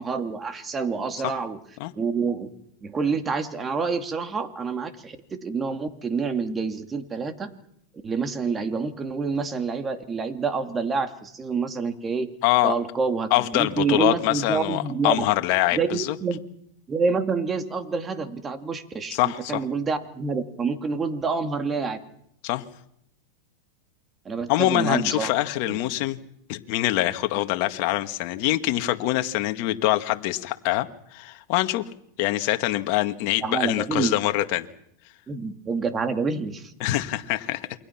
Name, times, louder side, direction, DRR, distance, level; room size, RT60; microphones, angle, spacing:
voice 1, 0.0-1.6 1.9-2.5 2.8-7.5 8.0-12.3 12.6-15.2 15.7-16.4 16.9-19.2 19.5-22.0 24.2-25.3 25.7-25.8 33.4-34.1 35.3-36.7, right 4 dB, 20° right, 7 dB, 2.5 m, -27 dB
voice 2, 12.4-12.7 13.3-16.2 19.1-19.6 22.4-22.6 24.5-26.2 26.5-31.8 32.2-34.7 36.8-37.7, left 16 dB, 55° left, 7 dB, 1.9 m, -24 dB
28.5 x 23.5 x 6.0 m, 0.75 s
hypercardioid pair, 120°, 0 cm